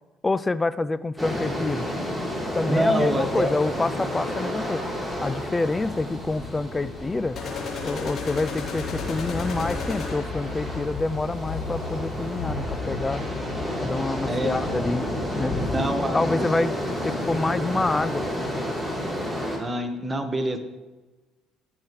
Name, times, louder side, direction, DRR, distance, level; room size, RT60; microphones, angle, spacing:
voice 1, 0.2-1.9 2.5-4.8 5.2-7.4 7.8-13.2 13.8-15.7 16.1-16.7 17.0-18.3, left 3 dB, 20° left, 16 dB, 0.4 m, -27 dB
sound 1, 1.2-19.6, equal, 5° right, 3.7 m, -31 dB
voice 2, 2.7-3.5 14.3-14.6 15.7-16.4 19.6-20.6, right 1 dB, 20° right, 5 dB, 1.6 m, -25 dB
sound 2, 4.7-15.8, left 4 dB, 75° left, 2.7 m, -36 dB
sound 3, 7.4-10.5, left 4 dB, 50° left, 3.9 m, -33 dB
16.5 x 7.1 x 3.3 m, 1.2 s
supercardioid pair, 80°, 0 cm